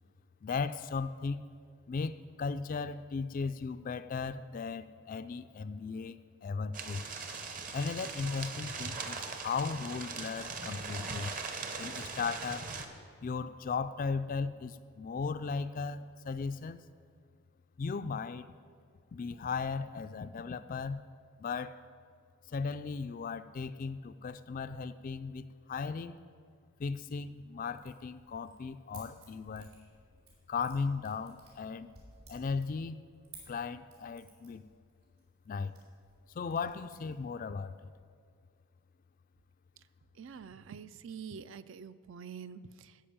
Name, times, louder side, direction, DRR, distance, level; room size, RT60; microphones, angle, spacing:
voice 1, 0.4-1.4 1.9-7.0 7.7-11.3 11.8-12.7 13.2-16.8 17.8-18.5 19.1-21.0 21.4-21.8 22.5-26.2 26.8-29.7 30.5-31.9 32.3-33.0 33.5-34.6 35.5-35.7 36.3-37.9, left 5 dB, 40° left, 12 dB, 0.3 m, -36 dB
sound 1, 6.7-12.8, right 4 dB, 40° right, 0.9 m, -40 dB
sound 2, 23.4-23.5 24.0-24.1 24.4-25.1 25.5-25.6 26.1-26.2 26.5-27.3 27.7-38.0, right 3 dB, 80° right, 3.8 m, -59 dB
voice 2, 40.2-43.0, right 6 dB, 60° right, 15 dB, 0.4 m, -46 dB
14.0 x 5.2 x 8.7 m, 2.1 s
head